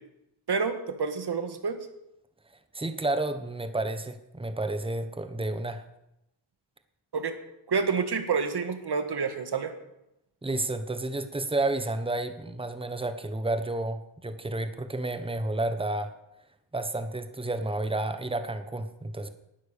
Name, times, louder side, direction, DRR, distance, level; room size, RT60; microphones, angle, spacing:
voice 1, 0.5-1.8 7.1-7.3 7.7-9.7, right 5 dB, 60° right, 8 dB, 1.7 m, -28 dB
voice 2, 2.7-5.8 10.4-16.1 16.7-19.3, right 2 dB, 10° right, 9 dB, 1.2 m, -31 dB
12.0 x 9.6 x 6.7 m, 0.87 s
cardioid pair, 65°, 45 cm